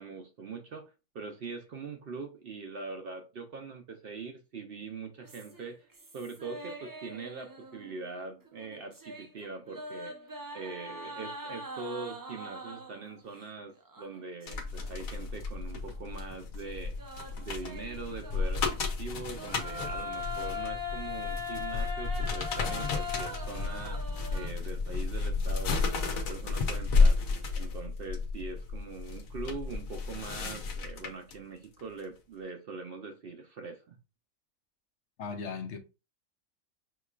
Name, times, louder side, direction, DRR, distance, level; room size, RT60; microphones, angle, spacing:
voice 1, 0.0-5.9 6.1-10.2 10.5-17.0 17.4-27.2 27.6-34.0, right 4 dB, 60° right, 0.7 m, -42 dB
sound 1, 5.2-8.1 8.4-13.1 13.9-14.9 15.3-15.4 16.6-18.8 19.3-24.5, left 3 dB, 35° right, 0.3 m, -41 dB
sound 2, 14.5-31.3 31.8-32.0, left 4 dB, 85° left, 1.2 m, -32 dB
voice 2, 35.2-35.8, left 5 dB, 65° left, 1.0 m, -37 dB
5.7 x 3.1 x 2.4 m
omnidirectional pair, 1.4 m